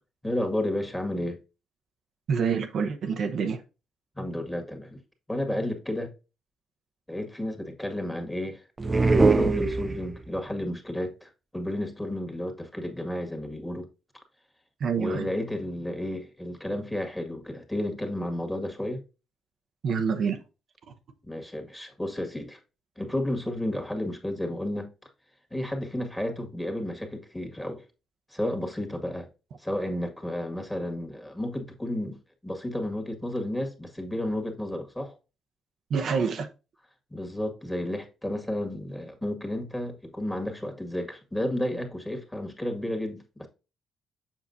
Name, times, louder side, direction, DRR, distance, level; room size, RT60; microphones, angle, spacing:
voice 1, 0.2-1.4 4.2-5.0 5.3-6.1 7.1-8.6 9.0-13.9 15.0-19.0 21.3-22.6 23.0-24.9 25.5-27.8 28.3-29.3 29.6-32.2 32.4-35.1 37.1-43.5, left 1 dB, 5° left, 1.9 m, -32 dB
voice 2, 2.3-3.6 14.8-15.3 19.8-20.4 35.9-36.5, right 6 dB, 60° right, 0.8 m, -27 dB
sound 1, 8.8-10.4, right 3 dB, 25° right, 0.5 m, -22 dB
7.2 x 5.7 x 2.7 m
cardioid pair, 90°, 0 cm